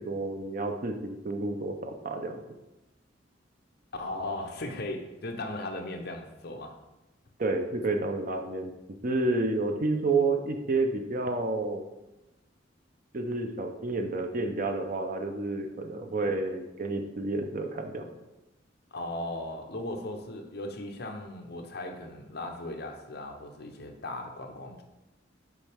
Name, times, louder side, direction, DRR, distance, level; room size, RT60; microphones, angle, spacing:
voice 1, 0.0-2.4 7.4-8.7 9.0-11.8 13.1-18.0, right 3 dB, 45° right, 5 dB, 0.6 m, -30 dB
voice 2, 3.9-6.7 18.9-24.8, left 2 dB, 55° left, 3 dB, 0.8 m, -37 dB
7.1 x 4.5 x 3.5 m, 1.0 s
head